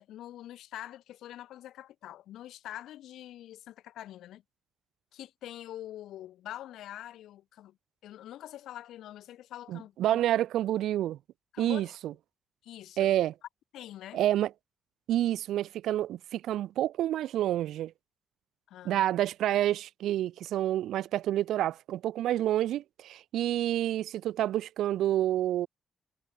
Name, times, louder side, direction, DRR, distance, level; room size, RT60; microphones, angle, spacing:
voice 1, 0.0-4.4 5.1-7.8 8.0-10.2 11.5-11.9 12.6-13.1 13.7-14.2 18.7-19.0, left 13 dB, 85° left, 1.0 m, -45 dB
voice 2, 9.7-11.2 11.6-12.1 13.0-13.3 14.1-14.5 15.1-17.9 18.9-25.7, right 12 dB, 85° right, 0.4 m, -28 dB
cardioid pair, 95°, 0 cm